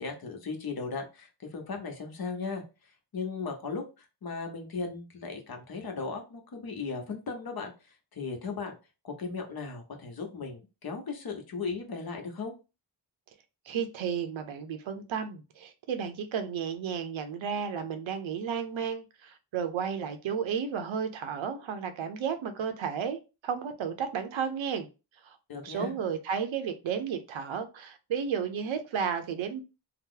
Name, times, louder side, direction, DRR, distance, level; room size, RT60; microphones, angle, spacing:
voice 1, 0.0-2.6 3.1-7.7 8.1-8.8 9.0-12.5 25.5-25.9, left 4 dB, 50° left, 0.9 m, -37 dB
voice 2, 13.7-24.9 25.2-29.6, right 7 dB, 75° right, 0.7 m, -33 dB
2.8 x 2.0 x 3.7 m
cardioid pair, 95°, 47 cm